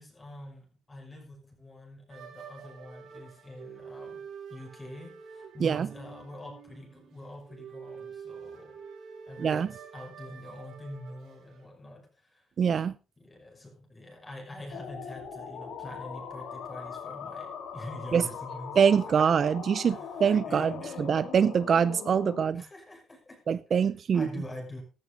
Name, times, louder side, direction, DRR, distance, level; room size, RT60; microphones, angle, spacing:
voice 1, 0.0-4.2 4.5-8.8 9.3-12.4 13.2-18.8 19.9-21.0 22.5-23.4 24.1-24.8, left 1 dB, 20° left, 6.0 m, -45 dB
sound 1, 2.1-11.7, right 6 dB, 75° right, 7.3 m, -47 dB
voice 2, 9.4-9.7 12.6-12.9 18.1-18.2 18.8-20.7 21.0-22.6 23.5-24.3, right 7 dB, 50° right, 0.5 m, -24 dB
ghostly ambient voice, 14.7-22.5, left 6 dB, 80° left, 3.7 m, -40 dB
15.0 x 11.5 x 3.9 m
cardioid pair, 90°, 0 cm